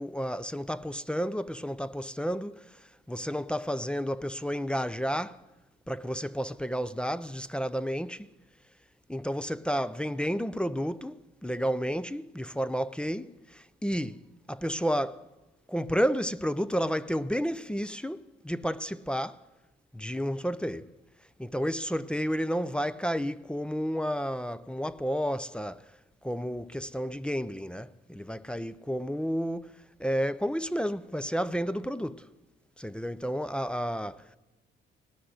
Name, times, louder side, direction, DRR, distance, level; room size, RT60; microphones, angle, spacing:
voice 1, 0.0-5.4 5.9-8.3 9.1-14.2 14.5-15.3 15.7-19.4 19.9-20.9 21.4-26.0 26.2-32.3 32.8-34.4, equal, 5° left, 0.4 m, -31 dB
18.0 x 6.3 x 9.4 m
cardioid pair, 90°, 20 cm